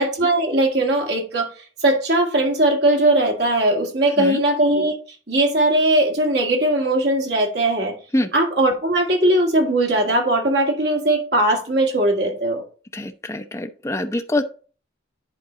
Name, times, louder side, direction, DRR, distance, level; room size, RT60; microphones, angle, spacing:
voice 1, 0.0-1.5 1.8-4.9 5.3-7.9 8.3-12.6, right 1 dB, 55° right, 2.0 m, -19 dB
voice 2, 12.9-14.4, left 1 dB, 15° left, 0.6 m, -24 dB
10.5 x 4.0 x 3.9 m
head